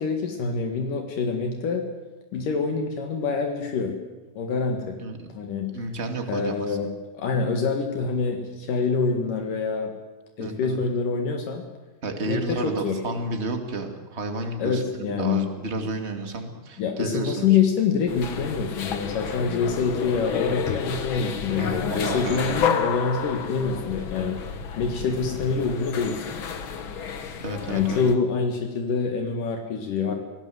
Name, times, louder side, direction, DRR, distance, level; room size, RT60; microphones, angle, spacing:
voice 1, 0.0-1.8 2.3-3.9 4.4-5.0 5.3-5.7 6.3-9.9 10.4-11.7 12.3-13.0 14.6-15.5 16.8-24.4 24.8-26.2 27.7-30.2, left 5 dB, 75° left, 4 dB, 3.4 m, -26 dB
voice 2, 5.7-6.8 10.4-10.8 12.0-17.6 21.5-22.6 27.4-28.0, right 2 dB, 20° right, 5 dB, 2.3 m, -31 dB
sound 1, 18.1-28.2, left 7 dB, 50° left, 1.7 m, -30 dB
27.5 x 18.0 x 7.9 m, 1.2 s
omnidirectional pair, 3.8 m